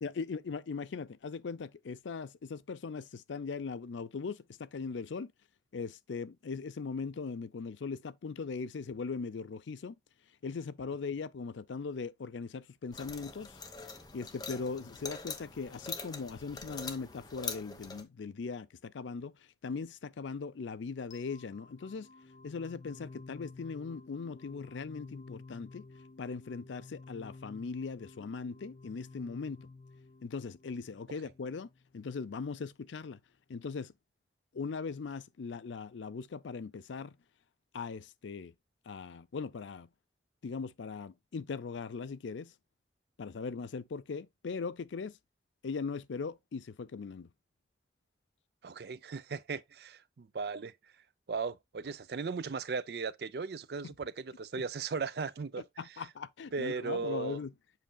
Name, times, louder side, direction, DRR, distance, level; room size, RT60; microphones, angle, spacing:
voice 1, 0.0-5.3 5.7-10.0 10.4-13.6 14.1-19.3 19.6-22.1 22.4-25.9 26.2-29.7 30.2-31.7 31.9-33.2 33.5-33.9 34.5-37.1 37.7-38.5 38.9-39.9 40.4-42.5 43.2-45.2 45.6-47.3 53.8-53.9 54.6-54.7 55.8-57.5, left 5 dB, 90° left, 0.5 m, -39 dB
sound 1, 12.9-18.0, left 4 dB, 20° left, 0.9 m, -43 dB
sound 2, 21.1-32.0, left 3 dB, 40° left, 0.5 m, -53 dB
voice 2, 48.6-50.7 51.3-55.6 56.5-57.4, right 5 dB, 60° right, 0.4 m, -37 dB
7.7 x 5.5 x 2.3 m
head